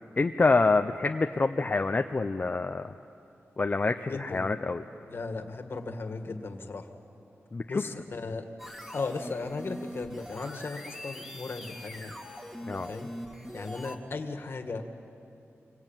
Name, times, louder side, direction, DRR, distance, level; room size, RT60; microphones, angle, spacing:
voice 1, 0.2-2.8 3.6-4.8 7.5-7.8 12.7-12.9, left 3 dB, 35° left, 6 dB, 0.6 m, -26 dB
voice 2, 4.1-4.5 5.0-6.9 7.7-8.5 8.9-12.1 12.9-13.1 13.5-14.8, left 3 dB, 50° left, 6 dB, 1.9 m, -36 dB
sound 1, 8.6-14.0, equal, 5° right, 2.3 m, -42 dB
26.0 x 23.5 x 9.1 m, 2.8 s
wide cardioid pair, 160°, 5 cm